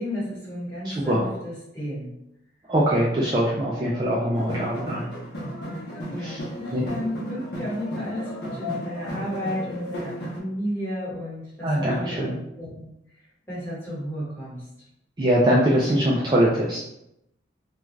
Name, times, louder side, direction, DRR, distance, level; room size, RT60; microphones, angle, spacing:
voice 1, 0.0-2.1 6.1-12.9 13.5-14.6, equal, 15° left, -10 dB, 1.3 m, -32 dB
voice 2, 0.8-1.2 2.7-5.1 6.2-6.4 6.7-6.9 11.6-12.4 15.2-16.8, equal, 25° right, -5 dB, 0.3 m, -22 dB
sound 1, 4.3-10.4, equal, 60° left, 0.7 m, -34 dB
2.3 x 2.3 x 3.1 m, 0.84 s
head